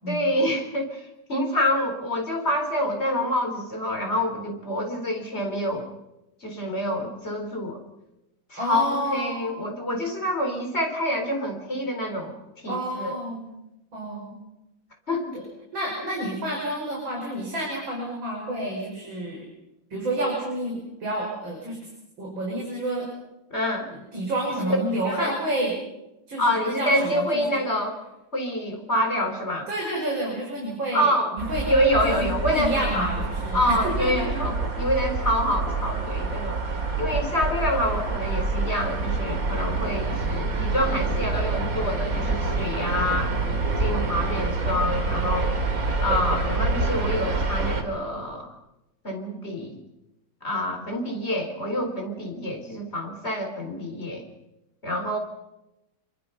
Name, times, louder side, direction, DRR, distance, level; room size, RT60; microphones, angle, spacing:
voice 1, 0.1-5.9 6.4-7.8 8.5-13.2 15.1-15.4 23.5-23.9 24.6-24.7 25.1-25.3 26.4-28.0 28.3-29.7 30.9-31.3 31.7-33.1 33.5-36.6 37.0-43.3 43.8-45.5 46.0-48.5 49.0-49.8 50.4-54.2 54.8-55.2, equal, 30° left, 3 dB, 4.1 m, -27 dB
voice 2, 8.6-9.7 12.7-13.5 13.9-14.4 15.3-15.4 15.7-19.4 19.9-21.8 22.2-23.1 24.1-25.8 26.3-27.6 29.7-31.1 31.3-31.7 32.0-34.3, right 1 dB, 80° right, -2 dB, 6.5 m, -29 dB
sound 1, 31.4-47.8, right 3 dB, 45° right, 2.8 m, -27 dB
27.5 x 23.5 x 5.7 m, 0.93 s
omnidirectional pair, 2.1 m